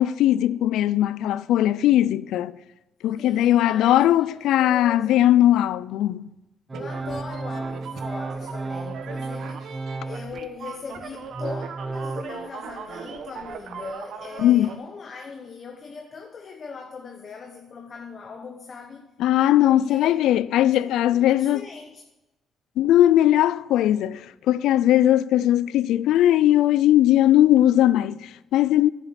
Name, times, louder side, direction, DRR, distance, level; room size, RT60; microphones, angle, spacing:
voice 1, 0.0-2.5 3.0-6.3 14.4-14.7 19.2-21.6 22.8-28.9, left 12 dB, 85° left, 0.3 m, -19 dB
voice 2, 3.2-5.3 6.7-19.1 19.6-20.2 20.6-22.0, left 5 dB, 45° left, 0.9 m, -40 dB
Organ, 6.7-10.5 11.0-12.2, right 3 dB, 20° right, 0.5 m, -33 dB
sound 1, 6.7-14.8, right 6 dB, 70° right, 0.9 m, -39 dB
9.7 x 6.9 x 5.8 m
cardioid pair, 90°, 0 cm